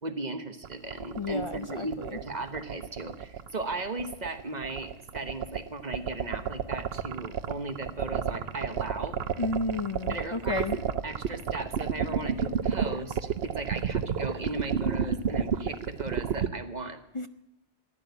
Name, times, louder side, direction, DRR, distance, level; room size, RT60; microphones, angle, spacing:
voice 1, 0.0-9.3 10.1-17.0, right 2 dB, 40° right, 8 dB, 1.2 m, -37 dB
sound 1, 0.6-16.5, right 8 dB, 65° right, 0.9 m, -30 dB
voice 2, 1.1-2.2 9.4-10.8 17.1-17.3, left 3 dB, 40° left, 10 dB, 0.4 m, -32 dB
15.0 x 10.0 x 8.0 m, 0.89 s
omnidirectional pair, 1.2 m